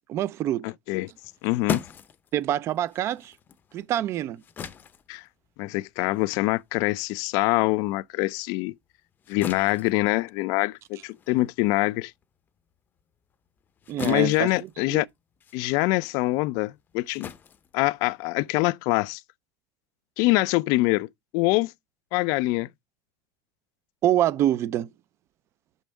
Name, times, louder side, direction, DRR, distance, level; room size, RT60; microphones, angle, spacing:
voice 1, 0.1-0.7 2.3-3.3 3.7-4.4 13.9-14.5 14.9-15.0 24.0-24.9, right 12 dB, 45° right, 0.4 m, -25 dB
voice 2, 0.6-1.1 1.4-1.8 5.1-5.2 5.6-8.7 9.3-12.1 14.0-15.1 15.5-17.3 17.7-19.2 20.2-21.1 21.3-21.7 22.1-22.7, left 21 dB, 65° left, 0.4 m, -24 dB
sound 1, 1.1-7.9 8.3-18.5, left 6 dB, 30° left, 0.6 m, -40 dB
6.1 x 5.5 x 4.4 m
cardioid pair, 145°, 7 cm